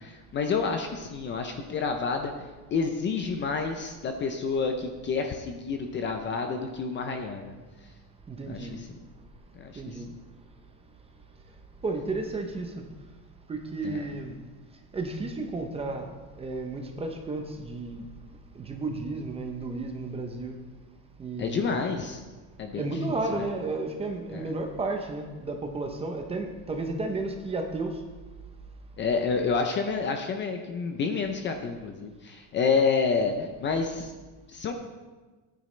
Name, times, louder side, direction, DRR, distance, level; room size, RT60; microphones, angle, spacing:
voice 1, 0.0-2.3 2.7-7.5 8.5-8.9 9.5-10.0 13.8-14.0 21.4-22.2 22.6-23.5 24.3-24.4 29.0-34.1 34.5-34.7, left 5 dB, 25° left, 5 dB, 0.5 m, -29 dB
voice 2, 8.3-8.8 9.7-10.1 11.8-12.8 13.5-14.4 14.9-16.1 16.3-18.1 18.5-20.6 21.2-21.7 22.7-28.0, right 3 dB, 15° right, 4 dB, 0.6 m, -33 dB
14.5 x 9.3 x 3.2 m, 1.3 s
cardioid pair, 175°, 43 cm